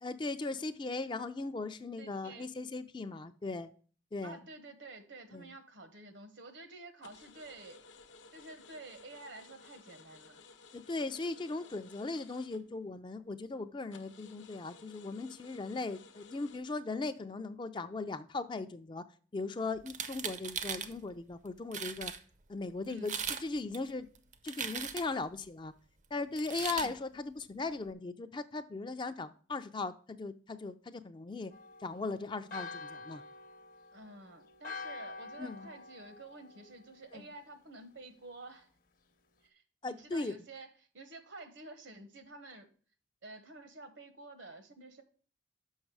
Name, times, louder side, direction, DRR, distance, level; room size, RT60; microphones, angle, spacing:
voice 1, 0.0-3.7 4.1-4.4 5.3-5.5 10.7-19.0 19.3-22.1 22.5-24.1 24.4-25.7 26.1-31.5 31.8-33.2 35.4-35.7 37.1-37.2 39.8-40.4, left 3 dB, 25° left, 10 dB, 0.4 m, -38 dB
voice 2, 2.0-2.5 4.2-7.8 8.3-10.4 22.9-23.1 26.7-27.0 33.9-38.7 39.4-40.7 40.9-42.7 43.2-45.0, right 2 dB, 75° right, 9 dB, 1.1 m, -50 dB
sound 1, 7.0-13.1 13.4-13.5 13.9-16.6, left 4 dB, 80° left, 0.8 m, -57 dB
sound 2, 19.8-20.9 21.4-21.5 21.7-22.2 22.9-23.4 23.7-25.2 26.3-26.9, right 7 dB, 40° right, 0.5 m, -38 dB
Church bell, 31.5-37.2, left 3 dB, 45° left, 0.7 m, -47 dB
6.4 x 5.6 x 4.7 m, 0.42 s
head